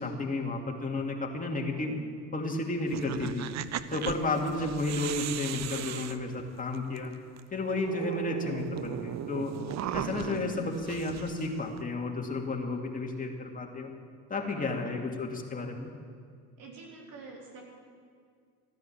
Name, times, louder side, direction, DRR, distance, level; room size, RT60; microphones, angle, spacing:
voice 1, 0.0-1.9 2.3-3.5 3.9-7.1 7.5-9.5 9.9-13.9 14.3-15.9, left 3 dB, 20° left, 1 dB, 2.6 m, -32 dB
voice 2, 1.5-2.0 4.0-4.3 9.9-10.4 14.5-15.0 16.6-17.6, right 4 dB, 65° right, -1 dB, 4.2 m, -47 dB
sound 1, 2.9-7.0 7.4-7.5 7.7-11.8, right 10 dB, 50° right, 0.7 m, -37 dB
15.0 x 10.5 x 8.6 m, 2.2 s
supercardioid pair, 85°, 36 cm